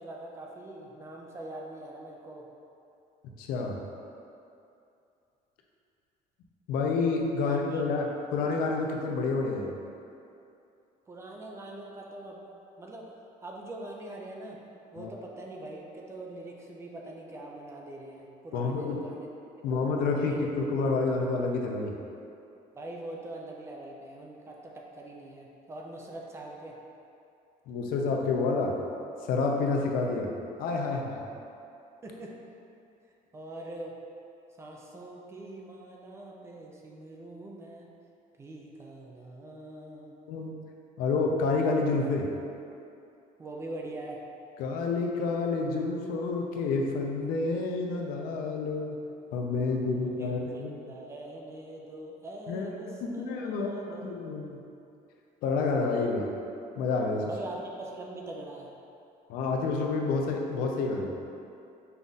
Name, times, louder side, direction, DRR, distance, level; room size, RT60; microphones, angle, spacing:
voice 1, 0.0-2.5 7.4-7.8 11.1-12.4 12.8-13.1 13.4-14.6 14.9-19.3 19.7-19.8 20.2-20.5 22.7-26.8 32.0-32.3 33.3-34.0 34.6-37.9 38.4-40.2 43.4-44.2 49.9-54.1 57.3-58.7, right 1 dB, 20° right, -1 dB, 0.4 m, -43 dB
voice 2, 3.4-3.8 6.7-9.7 15.0-15.1 18.5-19.0 19.6-21.9 27.7-28.8 29.3-30.3 30.6-31.2 40.3-40.6 41.0-42.3 44.6-49.0 49.3-51.0 52.5-52.7 53.0-53.7 54.0-54.6 55.4-56.3 56.8-57.3 59.3-61.1, left 3 dB, 80° left, 1 dB, 0.6 m, -29 dB
5.5 x 2.4 x 3.9 m, 2.7 s
cardioid pair, 170°, 15 cm